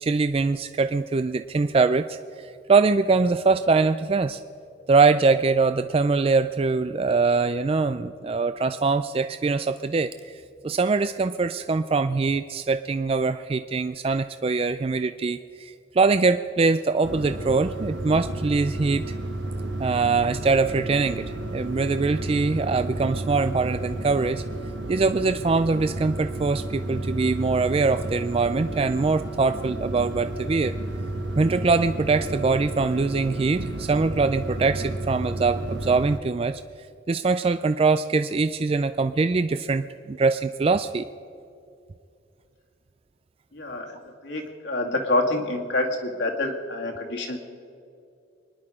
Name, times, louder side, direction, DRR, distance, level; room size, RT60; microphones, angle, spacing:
voice 1, 0.0-4.4 4.9-10.1 10.6-19.0 19.8-21.2 21.5-24.4 24.9-30.8 31.4-36.6 37.1-41.1, right 4 dB, 30° right, 10 dB, 0.3 m, -23 dB
sound 1, 17.0-36.2, right 1 dB, 70° right, 1.2 m, -32 dB
voice 2, 43.5-43.9 44.2-47.4, left 2 dB, 70° left, 1 dB, 2.3 m, -27 dB
25.5 x 10.5 x 5.0 m, 2.5 s
head